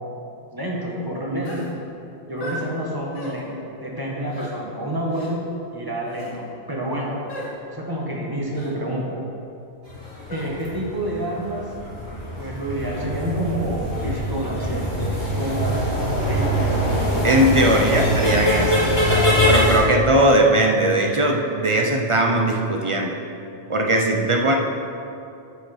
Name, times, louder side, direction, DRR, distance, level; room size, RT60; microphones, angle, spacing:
voice 1, 0.5-1.7 2.3-5.4 5.7-7.2 7.7-9.2 10.3-11.7 12.4-15.9 16.1-16.8 17.6-18.0, right 1 dB, 20° right, -3 dB, 1.1 m, -28 dB
sound 1, 1.4-1.7 2.4-2.6 3.1-3.4 4.3-4.5 5.1-5.3 6.1-6.3 7.3-7.5 8.5-8.7 10.3-10.5, equal, 90° left, 1.7 m, -35 dB
sound 2, 9.9-19.8, equal, 60° left, 2.5 m, -23 dB
voice 2, 17.2-23.2 23.7-24.5, right 1 dB, 45° right, 1 dB, 0.4 m, -19 dB
8.2 x 4.5 x 5.8 m, 2.6 s
omnidirectional pair, 1.3 m